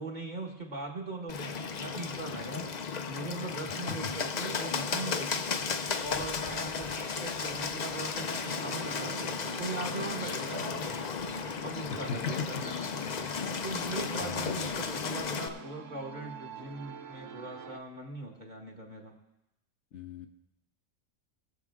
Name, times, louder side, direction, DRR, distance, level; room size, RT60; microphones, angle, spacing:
voice 1, 0.0-2.7 3.0-5.5 6.0-9.1 9.6-11.0 11.6-13.0 13.6-19.1, right 2 dB, 35° right, 0 dB, 1.7 m, -40 dB
Bird, 1.3-15.5, left 5 dB, 45° left, 0.6 m, -34 dB
voice 2, 3.7-4.0 11.9-12.2 14.2-14.7 19.9-20.3, left 6 dB, 65° left, 6 dB, 1.0 m, -40 dB
sound 1, 8.1-17.8, right 6 dB, 70° right, 1.1 m, -48 dB
20.5 x 7.3 x 3.6 m, 0.91 s
omnidirectional pair, 1.4 m